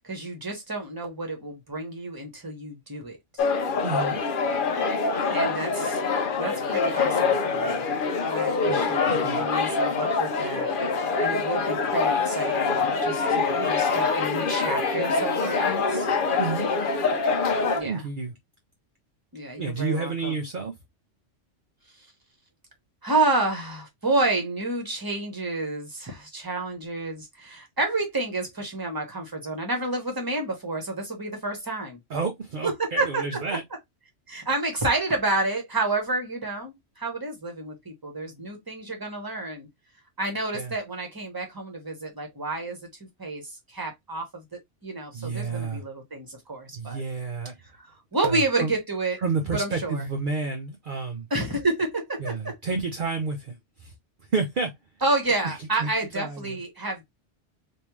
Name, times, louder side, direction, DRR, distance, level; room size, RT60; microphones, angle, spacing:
voice 1, 0.0-3.5 5.3-6.0 6.4-7.9 8.3-10.7 11.2-16.1 17.7-18.1 19.3-20.4 23.0-32.0 32.6-33.2 34.3-39.7 40.2-44.4 44.8-47.0 47.8-47.9 48.1-49.2 49.5-50.0 51.3-52.5 55.0-57.0, right 2 dB, 20° right, 1.2 m, -29 dB
sound 1, 3.4-17.8, left 4 dB, 55° left, 0.7 m, -25 dB
voice 2, 3.8-4.2 8.7-9.5 16.4-16.7 17.8-18.3 19.6-20.7 32.1-33.6 40.5-40.7 45.1-45.8 46.7-47.5 48.2-48.7 49.2-51.3 52.2-53.9 54.3-54.7 55.4-56.6, right 4 dB, 50° right, 0.8 m, -30 dB
3.5 x 2.6 x 3.0 m
omnidirectional pair, 1.2 m